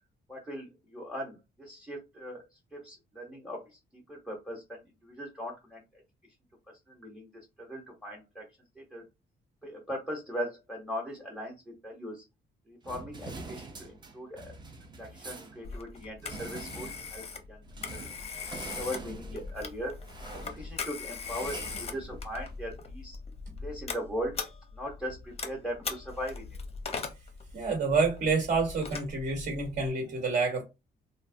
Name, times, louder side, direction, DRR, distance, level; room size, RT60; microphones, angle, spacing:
voice 1, 0.3-2.4 2.7-5.8 6.9-7.3 7.6-8.5 8.8-9.0 9.6-12.2 12.7-14.5 15.0-17.6 17.9-18.1 18.6-19.9 20.3-23.2 23.6-24.4 24.7-26.6, equal, ahead, 0.9 m, -39 dB
sound 1, 12.8-22.6, right 3 dB, 25° right, 0.5 m, -46 dB
Telephone, 15.6-29.9, left 5 dB, 35° left, 0.6 m, -40 dB
voice 2, 27.5-30.6, right 4 dB, 60° right, 1.3 m, -28 dB
3.1 x 2.1 x 2.6 m
cardioid pair, 115°, 19 cm